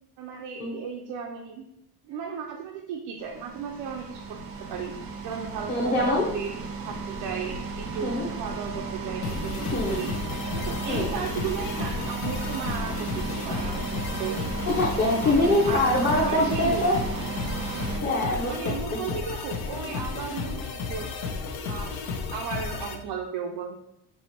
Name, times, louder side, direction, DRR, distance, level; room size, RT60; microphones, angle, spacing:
voice 1, 0.2-1.7 2.0-4.9 5.2-10.1 10.5-14.4 15.2-16.9 18.4-21.1 21.6-22.0 22.3-23.8, right 6 dB, 85° right, 1 dB, 0.6 m, -35 dB
sound 1, 3.2-18.0, right 4 dB, 40° right, 0.5 m, -34 dB
voice 2, 5.7-6.2 8.0-8.3 9.7-10.0 10.9-11.1 14.7-16.9 18.0-19.0, left 1 dB, 25° left, -5 dB, 0.7 m, -24 dB
sound 2, 9.2-22.9, left 4 dB, 75° left, 0.7 m, -33 dB
5.5 x 3.0 x 2.9 m, 0.83 s
cardioid pair, 175°, 38 cm